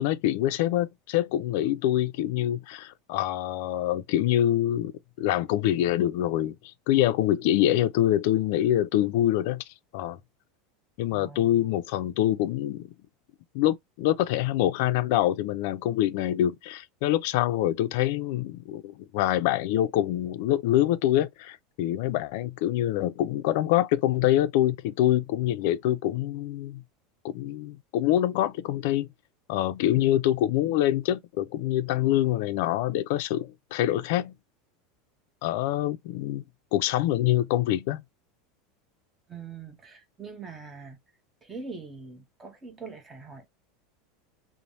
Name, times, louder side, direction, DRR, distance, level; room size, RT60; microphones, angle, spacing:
voice 1, 0.0-4.9 5.2-9.6 9.9-10.2 11.0-12.9 13.5-26.8 27.2-29.1 29.5-34.3 35.4-36.4 36.7-38.0, left 13 dB, 65° left, 0.4 m, -25 dB
voice 2, 11.1-11.7 39.3-41.0 41.4-43.5, right 4 dB, 15° right, 0.8 m, -43 dB
3.1 x 2.0 x 2.6 m
supercardioid pair, 145°, 0 cm